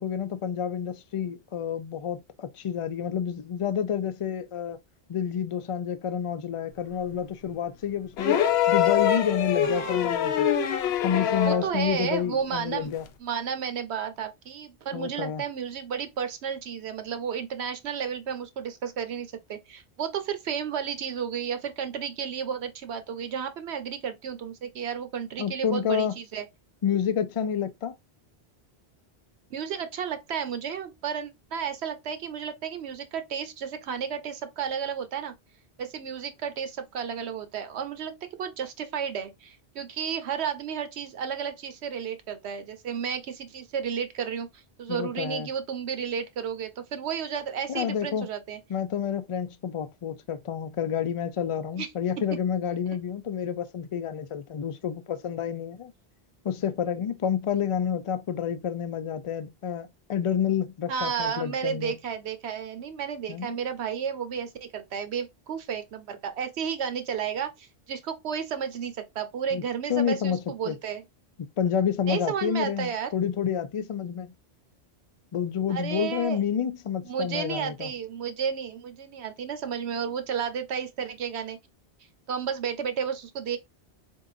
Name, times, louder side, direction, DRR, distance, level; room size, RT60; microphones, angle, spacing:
voice 1, 0.0-4.8 5.1-8.4 8.7-10.5 11.0-13.0 14.9-15.4 25.4-26.2 26.8-27.9 44.9-45.5 47.7-48.3 48.7-55.9 56.4-61.9 63.3-63.6 69.5-69.6 69.9-70.8 71.4-74.3 75.3-77.9, left 8 dB, 55° left, 0.3 m, -29 dB
sound 1, 8.2-11.7 13.1-13.2, left 9 dB, 75° left, 0.8 m, -24 dB
voice 2, 9.6-10.1 11.4-12.9 13.2-26.4 29.5-35.3 35.8-48.6 51.8-51.9 60.9-71.0 72.1-73.1 75.7-76.4 77.0-81.6 82.3-83.6, right 7 dB, 80° right, 1.0 m, -32 dB
3.9 x 3.6 x 2.5 m
omnidirectional pair, 1.1 m